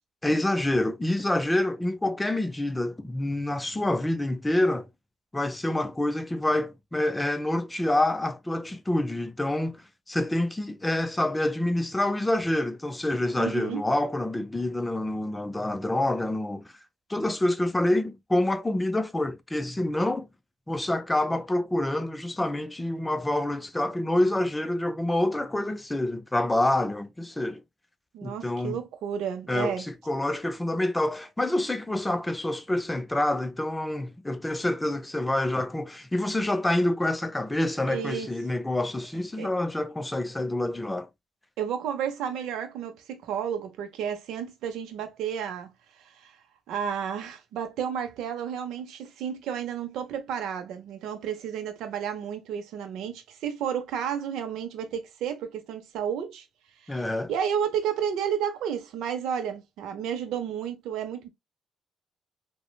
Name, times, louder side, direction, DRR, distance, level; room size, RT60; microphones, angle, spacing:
voice 1, 0.2-4.9 5.3-9.8 10.1-16.7 17.1-20.3 20.7-27.6 28.2-28.8 29.5-41.1 56.9-57.3, left 1 dB, 10° left, 0.4 m, -27 dB
voice 2, 13.4-13.9 28.1-29.8 37.9-38.3 39.4-39.5 41.6-45.7 46.0-46.4 46.7-56.5 56.9-61.3, right 8 dB, 85° right, 0.5 m, -32 dB
3.1 x 2.0 x 2.2 m
cardioid pair, 90°, 0 cm